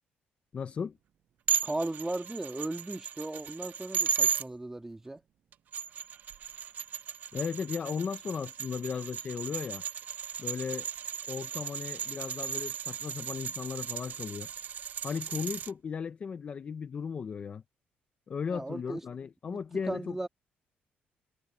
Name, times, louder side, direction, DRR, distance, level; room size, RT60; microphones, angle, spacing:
voice 1, 0.5-1.0 7.3-9.8 10.4-10.9 11.3-14.5 15.0-17.6 18.3-20.2, left 6 dB, 35° left, 0.6 m, -36 dB
sound 1, 1.5-4.4 5.5-15.7, right 8 dB, 50° right, 0.5 m, -35 dB
voice 2, 1.6-5.2 18.5-19.0 19.5-19.6 19.9-20.3, right 2 dB, 10° right, 2.3 m, -36 dB
cardioid pair, 140°, 4 cm